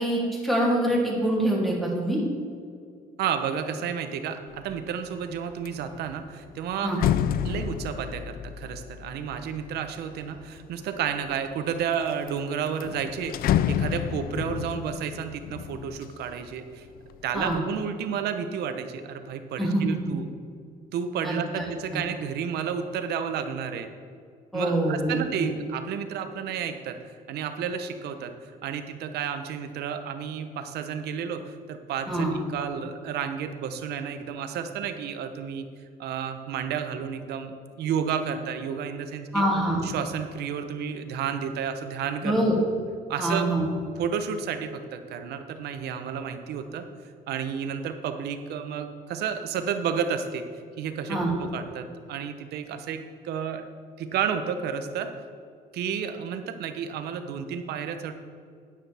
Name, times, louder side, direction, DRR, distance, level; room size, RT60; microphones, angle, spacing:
voice 1, 0.0-2.2 6.8-7.0 17.3-17.6 19.6-19.8 21.2-21.6 21.9-22.0 24.5-25.5 32.1-32.3 39.3-39.8 42.2-42.5 43.2-43.7 51.1-51.3, right 1 dB, ahead, -4 dB, 2.7 m, -25 dB
voice 2, 3.2-7.0 7.4-13.4 13.7-16.9 17.2-20.3 20.9-23.9 24.5-28.3 28.6-35.6 36.0-39.5 39.8-42.4 43.1-43.5 44.0-46.8 47.3-50.4 50.8-53.6 54.0-55.1 55.7-58.1, right 7 dB, 75° right, 8 dB, 0.9 m, -31 dB
sound 1, 4.6-4.9 5.3-10.7 11.3-11.9 12.3-12.4 12.7-16.6 17.0-17.6, left 10 dB, 60° left, 0.4 m, -30 dB
10.0 x 9.9 x 3.5 m, 2.3 s
cardioid pair, 110°, 17 cm